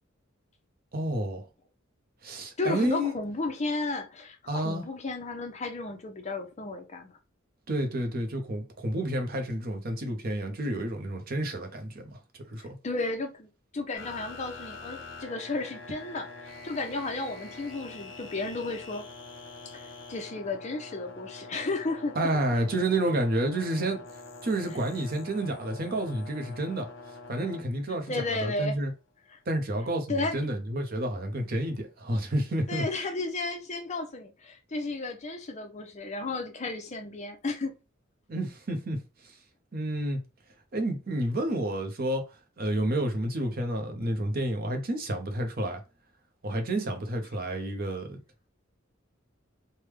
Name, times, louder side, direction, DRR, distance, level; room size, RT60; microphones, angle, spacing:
voice 1, 0.9-1.5 2.2-3.1 4.5-4.8 7.7-12.2 12.5-12.8 22.2-24.0 24.4-26.9 27.3-28.1 28.4-28.9 29.5-32.8 38.3-39.4 39.7-40.2 40.7-42.3 42.6-45.8 46.4-48.2, right 1 dB, 45° right, 0.7 m, -30 dB
voice 2, 2.6-7.2 12.8-19.1 19.6-22.2 27.9-28.8 29.3-29.4 30.1-30.4 32.7-37.7, left 2 dB, 35° left, 0.6 m, -33 dB
sound 1, 13.9-27.6, left 3 dB, 65° left, 1.2 m, -45 dB
3.4 x 2.2 x 3.2 m
head